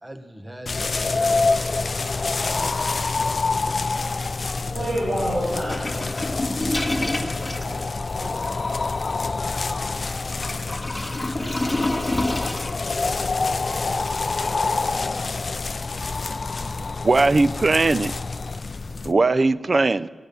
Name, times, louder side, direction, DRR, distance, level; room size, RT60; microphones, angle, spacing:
voice 1, 0.0-1.5 3.1-4.9 7.1-7.4 10.6-11.9 16.2-17.2, equal, 15° right, 7 dB, 0.9 m, -45 dB
sound 1, 0.7-19.1, left 3 dB, 50° left, 0.4 m, -27 dB
voice 2, 4.7-6.1 6.9-7.8 8.1-8.8, equal, 75° right, -9 dB, 5.6 m, -30 dB
sound 2, 5.7-14.9, left 1 dB, 15° left, 1.4 m, -30 dB
voice 3, 17.0-18.1 19.0-20.1, right 3 dB, 45° right, 16 dB, 0.4 m, -19 dB
15.0 x 10.0 x 6.7 m, 1.5 s
wide cardioid pair, 95°, 0 cm